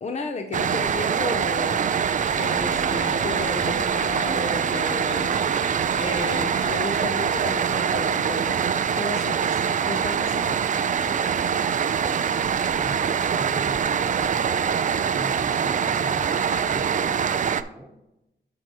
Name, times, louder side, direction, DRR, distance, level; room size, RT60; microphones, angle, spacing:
voice 1, 0.0-2.0 2.4-5.3 5.9-10.7, left 2 dB, 35° left, 5 dB, 0.6 m, -33 dB
sound 1, 0.5-17.6, right 7 dB, 40° right, 0.4 m, -24 dB
sound 2, 1.8-7.1, left 1 dB, 15° left, 2.5 m, -44 dB
sound 3, 2.6-14.3 15.2-15.5, equal, 60° left, 1.1 m, -44 dB
voice 2, 12.8-14.9 15.1-18.0, equal, 10° right, 2 dB, 1.3 m, -40 dB
12.5 x 4.6 x 2.9 m, 0.90 s
wide cardioid pair, 115°, 20 cm